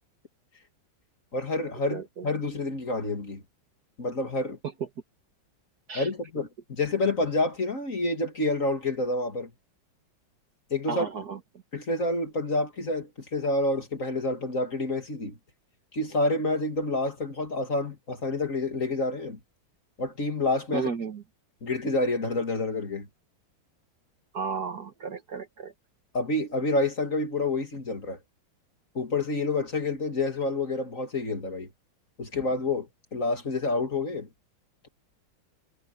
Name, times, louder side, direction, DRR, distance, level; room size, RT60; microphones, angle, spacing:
voice 1, 1.3-3.4 4.0-4.6 5.9-9.5 10.7-11.1 11.7-15.4 15.9-19.4 20.0-20.9 21.6-23.1 26.1-28.2 28.9-31.7 32.2-34.3, left 2 dB, 40° left, 2.8 m, -28 dB
voice 2, 1.9-2.3 5.9-6.1 10.9-11.4 20.7-21.2 24.3-25.7, right 5 dB, 50° right, 1.9 m, -33 dB
omnidirectional pair, 2.3 m